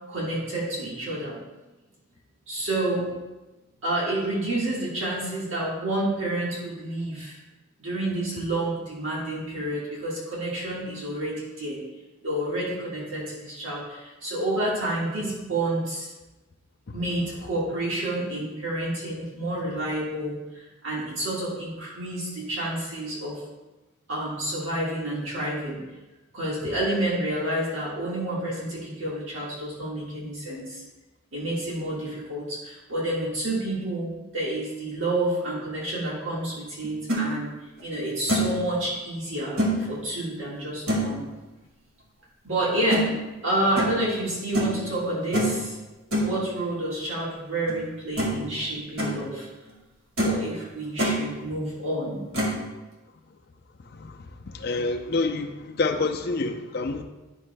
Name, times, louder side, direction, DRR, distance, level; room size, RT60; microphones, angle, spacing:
voice 1, 0.1-1.4 2.5-3.1 3.8-7.4 7.8-11.8 12.2-16.1 16.9-23.4 24.1-25.8 26.3-30.8 31.3-37.5 37.8-41.2 42.4-43.1 43.4-45.8 46.2-49.5 50.2-52.2, right 1 dB, 60° right, -6 dB, 1.7 m, -29 dB
sound 1, 36.8-37.2 37.8-37.9 38.3-38.6 39.6-39.8 40.9-41.1 42.9-43.0 43.8-44.0 44.5-44.8 45.3-45.6 46.1-46.3 47.7-47.8 48.2-48.5 48.8-49.1 49.7-49.8 50.2-50.4 50.7-51.2 52.3-52.6, right 1 dB, 80° right, 1.9 m, -25 dB
voice 2, 53.9-57.0, left 3 dB, 45° left, 4 dB, 0.5 m, -28 dB
11.0 x 6.1 x 2.2 m, 1.1 s
head